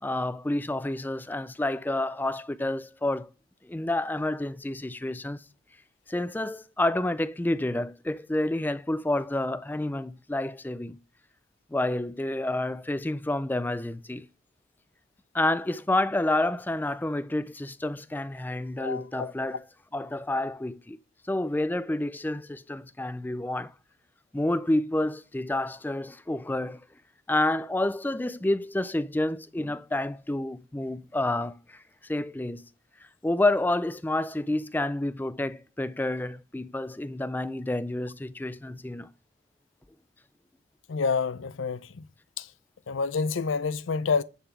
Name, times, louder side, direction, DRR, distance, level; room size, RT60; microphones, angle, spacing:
voice 1, 0.0-3.3 3.6-5.4 6.1-11.0 11.7-14.3 15.3-19.6 19.9-21.0 21.3-23.7 24.3-26.8 27.3-31.8 32.1-32.6 33.2-39.1, left 1 dB, 10° left, 0.3 m, -29 dB
voice 2, 18.8-19.3 40.9-42.1 42.4-42.5 42.9-44.2, left 5 dB, 85° left, 0.6 m, -28 dB
9.8 x 3.9 x 7.1 m
head